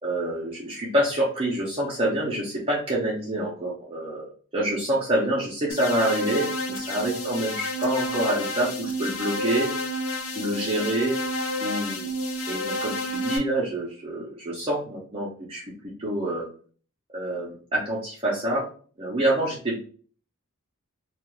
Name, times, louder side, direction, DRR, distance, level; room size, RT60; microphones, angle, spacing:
voice 1, 0.0-9.7 10.3-11.1 11.6-12.1 12.5-16.5 17.1-18.7 19.0-19.8, right 1 dB, 25° right, -5 dB, 0.6 m, -27 dB
sound 1, 5.7-13.4, left 1 dB, 65° left, 0.5 m, -30 dB
2.4 x 2.3 x 2.9 m, 0.42 s
head